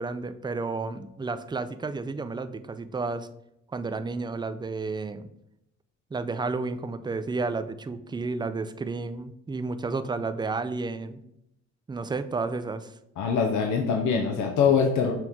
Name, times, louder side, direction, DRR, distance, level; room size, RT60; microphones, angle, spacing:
voice 1, 0.0-3.3 3.7-5.3 6.1-11.2 11.9-12.9, right 3 dB, 15° right, 11 dB, 0.4 m, -31 dB
voice 2, 13.2-15.1, left 6 dB, 75° left, 2 dB, 0.8 m, -23 dB
6.1 x 3.7 x 4.5 m, 0.80 s
cardioid pair, 90°, 30 cm